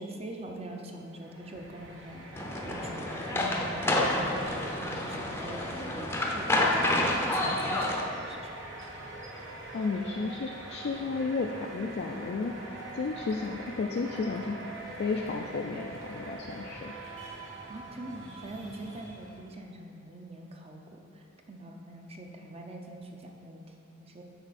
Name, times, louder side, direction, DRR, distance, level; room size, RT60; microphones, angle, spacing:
voice 1, 0.0-2.3 2.6-8.5 17.7-23.6 24.0-24.2, right 1 dB, 30° right, 2 dB, 0.7 m, -43 dB
sound 1, 1.1-19.5, right 2 dB, 70° right, 1.1 m, -44 dB
sound 2, 2.4-8.0, left 1 dB, 10° left, 0.6 m, -29 dB
voice 2, 9.7-14.6 15.0-16.9, left 4 dB, 55° left, 3 dB, 0.4 m, -33 dB
8.1 x 5.3 x 4.1 m, 2.7 s
head